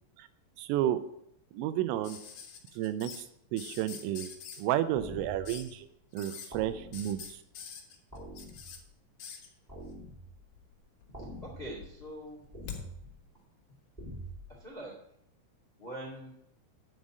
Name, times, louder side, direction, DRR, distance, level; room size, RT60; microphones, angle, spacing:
voice 1, 0.6-1.0 1.5-2.2 2.7-3.2 3.5-4.3 4.6-5.9 6.1-7.4, right 12 dB, 85° right, 11 dB, 3.2 m, -31 dB
sound 1, 2.0-3.2 3.6-4.6 5.4-5.7 6.1-6.5 6.9-8.8 9.2-9.5 10.5-11.1 11.4-12.8 14.2-14.3, left 7 dB, 65° left, 2.9 m, -45 dB
sound 2, 4.9-5.7 6.5-7.3 8.1-8.9 9.7-10.5 11.1-11.9 12.5-13.2 14.0-14.5, equal, 10° right, 3.0 m, -45 dB
voice 2, 11.1-12.4 14.5-14.9 15.8-16.3, right 1 dB, 80° left, -2 dB, 0.5 m, -43 dB
9.8 x 5.3 x 7.5 m, 0.76 s
omnidirectional pair, 5.9 m